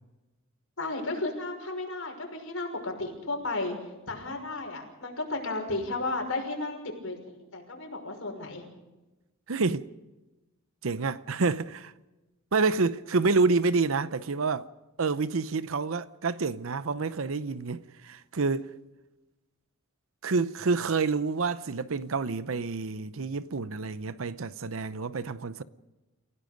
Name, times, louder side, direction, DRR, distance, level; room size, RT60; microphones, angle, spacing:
voice 1, 0.8-3.8 4.1-7.2 7.5-8.6, left 2 dB, 70° left, 6.0 m, -33 dB
voice 2, 9.5-9.9 10.8-11.9 12.5-14.7 15.0-18.7 20.2-25.6, right 4 dB, 70° right, 0.7 m, -28 dB
29.0 x 17.0 x 5.2 m
head